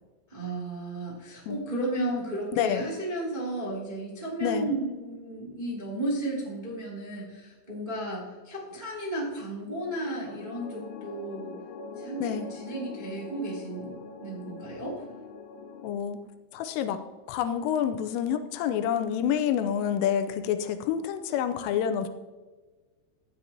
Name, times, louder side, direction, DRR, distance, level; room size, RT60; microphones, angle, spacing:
voice 1, 0.3-11.6 12.0-14.0 14.2-15.0, right 1 dB, 20° right, -6 dB, 1.2 m, -34 dB
voice 2, 2.5-2.9 4.4-4.7 12.2-12.5 15.8-16.2 16.5-17.0 17.3-22.1, left 9 dB, 90° left, 8 dB, 3.2 m, -28 dB
sound 1, 9.9-15.9, left 4 dB, 70° left, 2.6 m, -42 dB
15.0 x 10.5 x 2.9 m, 1.3 s
omnidirectional pair, 5.8 m